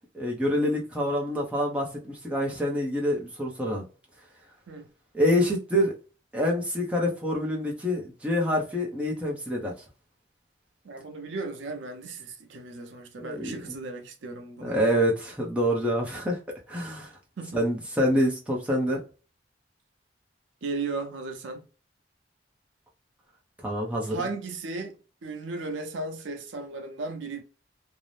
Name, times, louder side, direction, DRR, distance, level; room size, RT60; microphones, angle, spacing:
voice 1, 0.1-3.8 5.1-5.9 6.3-9.7 13.2-13.8 14.6-16.4 16.7-17.1 17.5-19.0 23.6-24.2, equal, 5° right, 0.6 m, -26 dB
voice 2, 10.8-14.8 17.4-17.6 20.6-21.6 24.0-25.0 25.2-27.4, right 3 dB, 80° right, 0.5 m, -35 dB
2.6 x 2.0 x 3.2 m
head